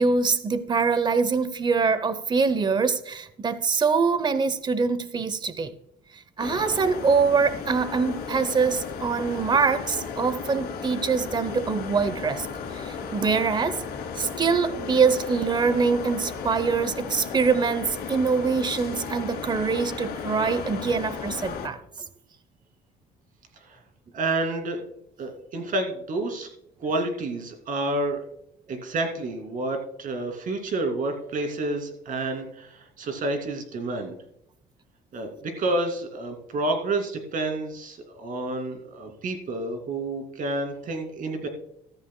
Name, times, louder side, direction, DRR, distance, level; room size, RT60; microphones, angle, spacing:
voice 1, 0.0-5.7 6.4-12.5 12.7-13.8 14.2-21.8, right 5 dB, 25° right, 0.8 m, -24 dB
sound 1, 6.4-21.7, left 6 dB, 65° left, 2.6 m, -35 dB
voice 2, 24.1-24.8 25.2-26.5 26.8-28.2 28.7-34.1 35.1-41.5, right 2 dB, 55° right, 2.5 m, -29 dB
14.5 x 13.0 x 2.2 m
cardioid pair, 110°, 17 cm